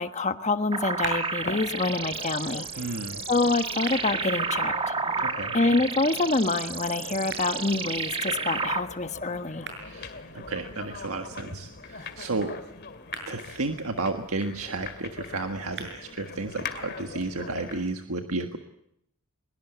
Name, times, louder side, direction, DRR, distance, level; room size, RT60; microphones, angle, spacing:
voice 1, 0.0-2.9 3.3-4.9 5.5-9.7, left 3 dB, 30° left, 9 dB, 1.3 m, -26 dB
sound 1, 0.6-16.6, right 4 dB, 55° right, 7.0 m, -46 dB
sound 2, 0.7-8.8, right 4 dB, 25° right, 1.4 m, -31 dB
sound 3, 1.4-17.9, left 4 dB, 50° left, 2.4 m, -42 dB
voice 2, 2.8-3.2 5.2-5.6 9.8-12.6 13.2-18.6, right 3 dB, 70° right, 5 dB, 1.6 m, -32 dB
22.5 x 22.5 x 8.1 m, 0.74 s
head